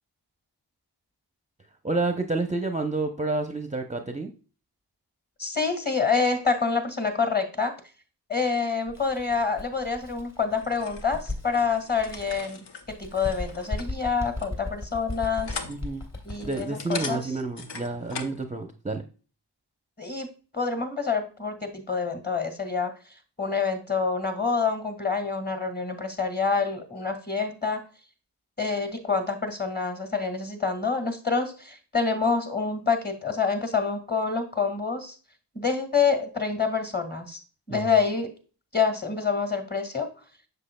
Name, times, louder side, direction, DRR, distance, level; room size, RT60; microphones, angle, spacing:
voice 1, 1.8-4.3 15.7-16.0 16.4-19.0 37.7-37.8, right 3 dB, 15° right, 5 dB, 0.7 m, -29 dB
voice 2, 5.4-7.7 8.3-15.6 16.2-17.2 20.0-22.9 23.4-27.8 28.6-35.2 35.6-37.4 37.7-38.3 38.7-40.1, left 5 dB, 25° left, 6 dB, 1.7 m, -27 dB
Bird, 8.9-12.4 12.8-16.7, left 2 dB, 40° left, 2.2 m, -37 dB
sound 1, 10.5-18.4, left 5 dB, 75° left, 0.9 m, -41 dB
7.5 x 6.4 x 2.2 m, 0.37 s
cardioid pair, 50°, 42 cm